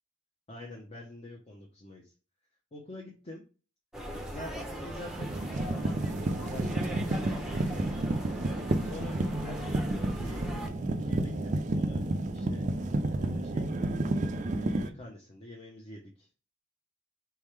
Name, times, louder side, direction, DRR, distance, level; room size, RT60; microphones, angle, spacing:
voice 1, 0.5-2.1 2.7-3.4 4.3-5.4 5.7-8.2 8.8-13.9 14.6-16.3, left 1 dB, 30° left, -1 dB, 0.8 m, -46 dB
sound 1, 3.9-10.7, equal, ahead, 0.8 m, -40 dB
sound 2, 4.3-4.4 4.9-14.9, right 2 dB, 35° right, 0.5 m, -31 dB
4.5 x 3.6 x 3.2 m, 0.35 s
head